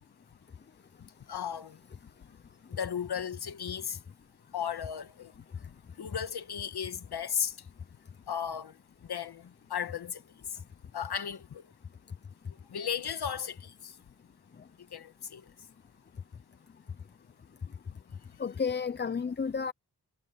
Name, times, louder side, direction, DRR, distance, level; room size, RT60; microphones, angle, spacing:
voice 1, 1.3-1.8 2.8-4.0 4.5-5.3 6.0-7.5 8.3-8.7 9.1-9.4 9.7-10.2 10.9-11.6 12.7-13.5 14.9-15.4, left 8 dB, 70° left, 1.5 m, -35 dB
voice 2, 18.4-19.7, left 5 dB, 30° left, 0.5 m, -32 dB
wide cardioid pair, 140°, 40 cm